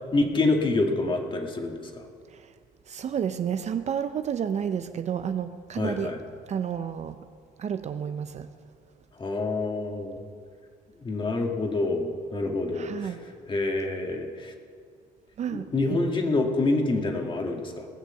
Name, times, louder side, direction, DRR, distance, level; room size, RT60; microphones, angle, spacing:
voice 1, 0.1-2.1 5.8-6.2 9.2-10.3 11.0-13.2 13.5-14.5 15.5-17.9, left 2 dB, 30° left, 1.8 m, -27 dB
voice 2, 2.9-6.1 6.5-7.3 7.6-8.5 12.7-13.2 15.4-16.0, right 8 dB, 40° right, 0.6 m, -31 dB
19.0 x 6.6 x 7.5 m
cardioid pair, 110°, 17 cm